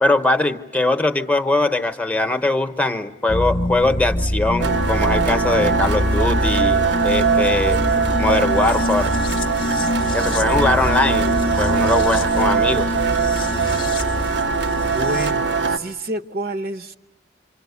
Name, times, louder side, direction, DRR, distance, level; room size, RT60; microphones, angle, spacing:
voice 1, 0.0-7.8 8.2-9.1 10.1-12.9, left 2 dB, 10° left, 7 dB, 0.9 m, -21 dB
sound 1, 3.3-15.3, left 1 dB, 30° left, 0.9 m, -24 dB
sound 2, 4.6-15.8, right 5 dB, 85° right, 1.0 m, -21 dB
voice 2, 14.7-16.9, right 1 dB, 55° right, 9 dB, 0.9 m, -29 dB
27.5 x 25.0 x 8.2 m, 1.0 s
head